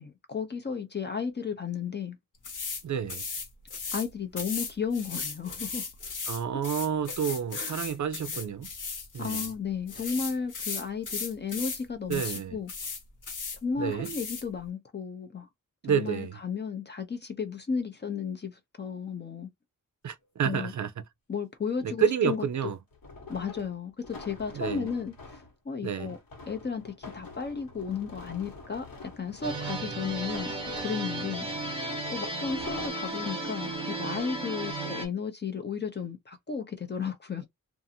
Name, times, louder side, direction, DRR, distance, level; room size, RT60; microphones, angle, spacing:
voice 1, 0.0-2.2 3.9-5.9 7.6-7.8 9.2-12.7 13.6-15.5 15.9-19.5 20.4-20.7 21.3-22.5 23.3-25.4 25.7-26.2 26.5-30.5 30.8-31.5 32.1-37.5, left 6 dB, 30° left, 0.5 m, -34 dB
sound 1, 2.4-2.8 3.1-4.1 4.4-9.5 9.9-11.8 12.1-12.4 12.7-13.6 14.0-14.4, left 4 dB, 65° left, 1.2 m, -36 dB
voice 2, 2.8-3.2 6.3-8.7 9.1-9.5 12.1-12.6 13.8-14.1 15.8-16.4 20.0-20.9 21.8-22.8 24.5-24.9 25.8-26.1, right 8 dB, 60° right, 0.5 m, -29 dB
sound 2, 20.2-20.3 22.9-25.5 26.1-31.3 32.1-32.9, left 3 dB, 85° left, 1.3 m, -46 dB
sound 3, 29.4-35.1, right 2 dB, 15° right, 0.9 m, -34 dB
2.6 x 2.5 x 2.6 m
wide cardioid pair, 155°, 34 cm